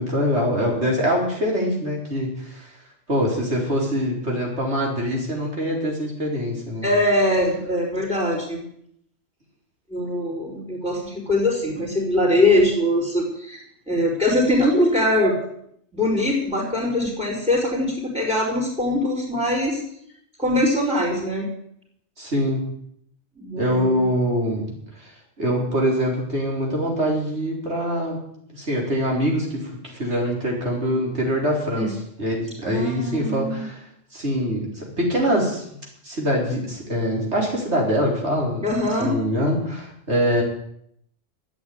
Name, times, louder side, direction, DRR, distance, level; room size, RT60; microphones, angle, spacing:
voice 1, 0.0-2.7 3.1-6.9 22.2-22.6 23.6-24.7 24.9-25.1 25.4-28.2 28.5-33.8 34.1-35.6 36.0-38.6 39.0-40.4, equal, 70° right, -1 dB, 4.7 m, -24 dB
voice 2, 6.8-8.6 9.9-15.4 15.9-19.8 20.4-21.5 23.4-24.1 31.8-31.9 32.6-33.7 38.6-39.2, left 1 dB, 5° right, -5 dB, 4.4 m, -22 dB
13.5 x 8.9 x 9.5 m, 0.70 s
omnidirectional pair, 1.2 m